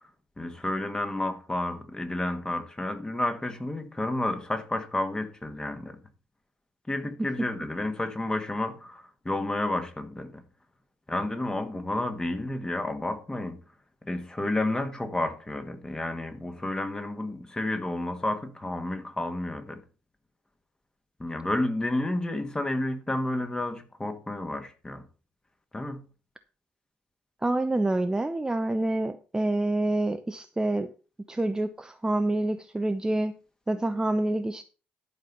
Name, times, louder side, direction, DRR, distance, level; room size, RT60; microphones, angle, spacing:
voice 1, 0.4-6.0 6.9-10.4 11.1-13.6 14.0-19.8 21.2-25.1 25.7-26.1, left 1 dB, 15° left, 1.7 m, -31 dB
voice 2, 27.4-30.9 31.3-33.4 33.7-34.6, right 2 dB, 15° right, 0.7 m, -27 dB
11.5 x 5.2 x 5.7 m
figure-of-eight pair, 50°, 5 cm